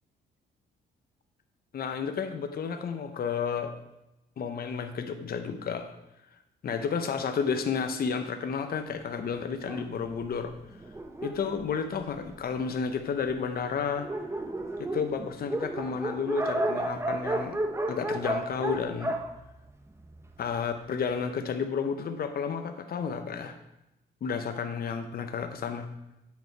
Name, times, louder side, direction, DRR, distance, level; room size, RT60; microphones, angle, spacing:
voice 1, 1.7-3.7 4.4-5.9 6.6-10.5 11.2-14.1 14.8-17.6 17.9-19.1 20.4-23.6 24.2-25.9, left 6 dB, 50° left, 7 dB, 0.8 m, -31 dB
Dog, 9.6-12.6 13.3-13.4 13.7-13.8 14.0-20.4, right 1 dB, 15° right, 0.8 m, -33 dB
9.2 x 5.2 x 4.6 m, 0.89 s
cardioid pair, 90°, 20 cm